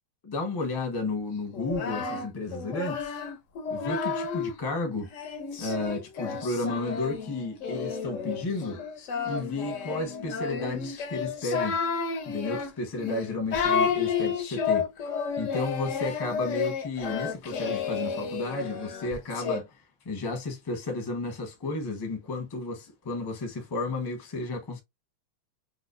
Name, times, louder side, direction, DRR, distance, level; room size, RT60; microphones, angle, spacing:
voice 1, 0.2-3.1 3.7-5.1 5.6-8.8 9.2-11.8 12.3-15.1 15.4-24.8, left 2 dB, 30° left, 0.4 m, -33 dB
Singing, 1.5-4.6 5.1-19.6, left 6 dB, 75° left, 0.6 m, -31 dB
4.9 x 2.2 x 2.4 m
omnidirectional pair, 2.2 m